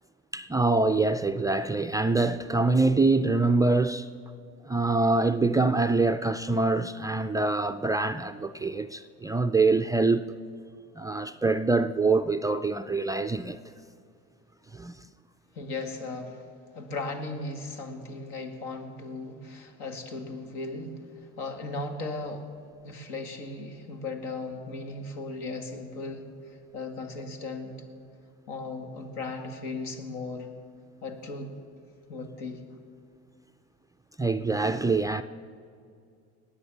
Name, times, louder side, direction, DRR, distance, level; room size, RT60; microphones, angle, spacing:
voice 1, 0.3-4.1 4.7-10.3 11.0-13.6 14.7-15.0 34.2-35.2, right 3 dB, 10° right, 0.3 m, -25 dB
voice 2, 15.5-16.5 16.7-22.5 22.8-27.8 28.5-30.5 31.0-31.5 32.1-32.6, left 3 dB, 75° left, 2.2 m, -37 dB
19.5 x 8.7 x 7.2 m
supercardioid pair, 105°, 33 cm